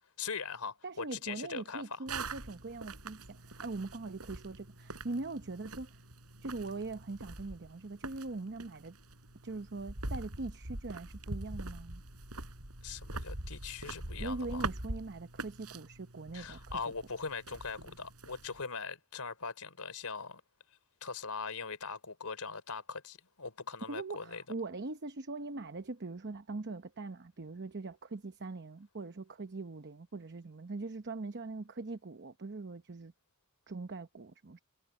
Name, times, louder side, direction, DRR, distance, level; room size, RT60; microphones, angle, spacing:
voice 1, 0.2-2.0 12.8-14.7 16.3-20.4 21.0-24.4, left 5 dB, 85° left, 3.4 m, -41 dB
voice 2, 0.8-6.0 6.4-9.0 9.4-12.0 14.2-16.8 23.9-33.1 33.7-34.6, right 3 dB, 50° right, 0.9 m, -41 dB
sound 1, 2.1-18.6, right 2 dB, 90° right, 5.7 m, -44 dB
head